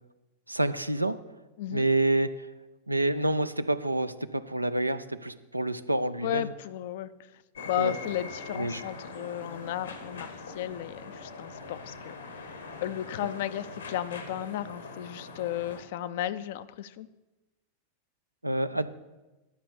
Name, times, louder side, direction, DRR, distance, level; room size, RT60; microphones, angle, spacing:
voice 1, 0.5-1.2 1.7-2.5 2.9-6.5 7.8-7.9 8.5-8.8 18.4-18.9, right 1 dB, 85° right, 11 dB, 0.5 m, -28 dB
voice 2, 6.2-7.1 7.7-12.5 12.8-17.1, left 12 dB, 55° left, 13 dB, 0.5 m, -34 dB
sound 1, 7.5-15.8, left 4 dB, 75° left, 1.5 m, -42 dB
11.5 x 5.8 x 6.9 m, 1.1 s
figure-of-eight pair, 90°, 0 cm